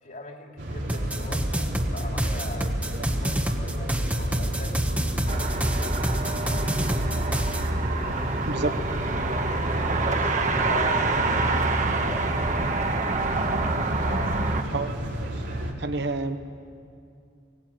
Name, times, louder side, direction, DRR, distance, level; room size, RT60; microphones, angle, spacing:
voice 1, 0.0-1.5 1.9-4.8 5.3-6.8 7.7-9.5 10.0-13.5 13.9-14.9 15.6-16.1, left 2 dB, 50° left, 2 dB, 3.2 m, -41 dB
sound 1, 0.6-15.7, right 1 dB, 85° right, 3.5 m, -31 dB
sound 2, 0.9-7.7, equal, 10° right, 1.3 m, -28 dB
sound 3, 5.3-14.6, right 3 dB, 45° right, 1.5 m, -27 dB
voice 2, 15.8-16.4, right 3 dB, 65° right, 8 dB, 1.2 m, -29 dB
23.5 x 17.0 x 9.2 m, 2.4 s
head